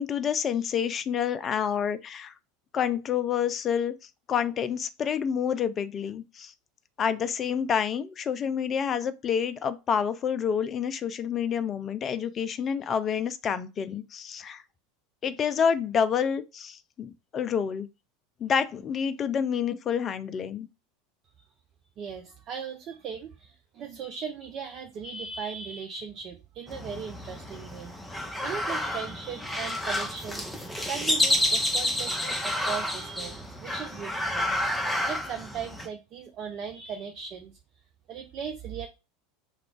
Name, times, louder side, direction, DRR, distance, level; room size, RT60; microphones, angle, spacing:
voice 1, 0.0-2.3 2.7-3.9 4.3-6.5 7.0-14.6 15.2-17.9 18.4-20.7, left 7 dB, 30° left, 0.4 m, -28 dB
voice 2, 22.0-34.5 35.1-37.6 38.1-38.9, right 7 dB, 40° right, 0.4 m, -38 dB
sound 1, 26.7-35.9, left 1 dB, 5° left, 0.7 m, -30 dB
2.3 x 2.3 x 3.6 m
figure-of-eight pair, 80°, 0 cm